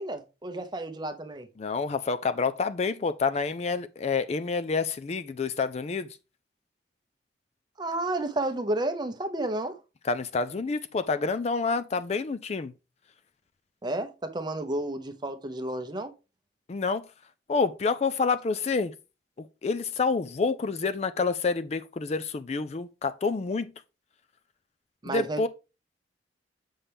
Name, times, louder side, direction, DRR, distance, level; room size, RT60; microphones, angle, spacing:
voice 1, 0.0-1.5 7.8-9.8 13.8-16.1 25.0-25.5, right 1 dB, 25° right, 0.7 m, -31 dB
voice 2, 1.6-6.1 10.1-12.7 16.7-17.0 17.5-18.9 19.4-23.7 25.1-25.5, left 4 dB, 35° left, 0.4 m, -28 dB
7.3 x 5.5 x 3.4 m
head